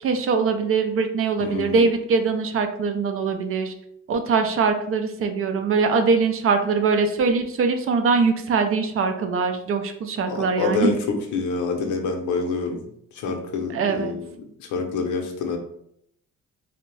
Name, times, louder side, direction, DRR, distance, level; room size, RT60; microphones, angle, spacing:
voice 1, 0.0-3.7 4.1-11.0 13.7-14.1, right 4 dB, 45° right, 6 dB, 0.4 m, -22 dB
voice 2, 1.4-1.8 10.3-12.9 13.1-14.3 14.6-15.6, left 4 dB, 75° left, 3 dB, 0.6 m, -27 dB
2.7 x 2.1 x 3.0 m, 0.72 s
cardioid pair, 90°, 30 cm